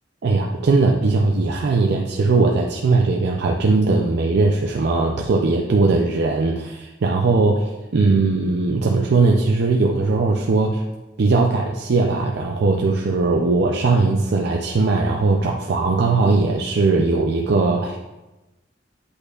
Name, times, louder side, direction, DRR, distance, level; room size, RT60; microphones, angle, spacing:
voice 1, 0.2-10.8 11.2-18.0, right 3 dB, 60° right, 0 dB, 0.5 m, -19 dB
8.3 x 5.3 x 2.4 m, 1.0 s
head